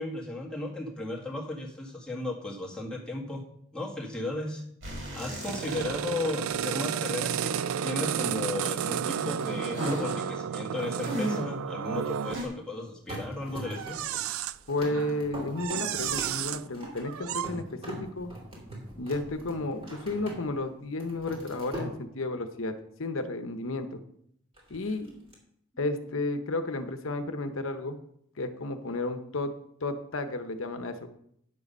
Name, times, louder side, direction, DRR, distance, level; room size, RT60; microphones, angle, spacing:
voice 1, 0.0-3.4 3.7-4.6 5.1-14.1 25.1-25.2, left 2 dB, 5° left, -3 dB, 1.7 m, -35 dB
sound 1, 4.8-6.2 6.5-6.6 9.4-10.2 11.0-11.6 12.3-12.5, equal, 55° right, 5.4 m, -35 dB
sound 2, 5.4-12.5 13.7-14.6 14.9-15.2 15.5-16.6 17.0-17.5, right 8 dB, 80° right, 0.4 m, -32 dB
sound 3, 13.1-20.6 20.9-21.9 24.6-25.3, right 1 dB, 25° right, 3.1 m, -42 dB
voice 2, 14.7-18.3 19.0-24.0 24.7-25.1 25.8-28.0 28.4-29.5 29.8-31.1, left 2 dB, 70° left, 8 dB, 0.9 m, -32 dB
9.9 x 7.6 x 5.4 m, 0.70 s
head